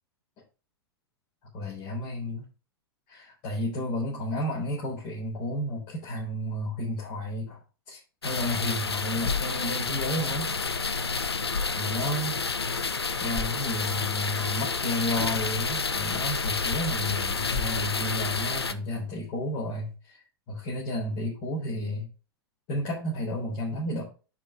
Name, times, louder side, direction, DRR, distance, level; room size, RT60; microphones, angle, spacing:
voice 1, 1.5-2.4 3.1-7.6 7.9-10.6 11.7-12.4 13.2-20.2 20.5-22.1 22.7-24.0, left 1 dB, 40° left, -5 dB, 4.0 m, -32 dB
sound 1, 8.2-18.7, left 4 dB, 80° left, 0.7 m, -29 dB
sound 2, 8.9-20.0, left 3 dB, 15° left, 1.7 m, -47 dB
9.9 x 4.9 x 3.5 m, 0.33 s
figure-of-eight pair, 95°, 13 cm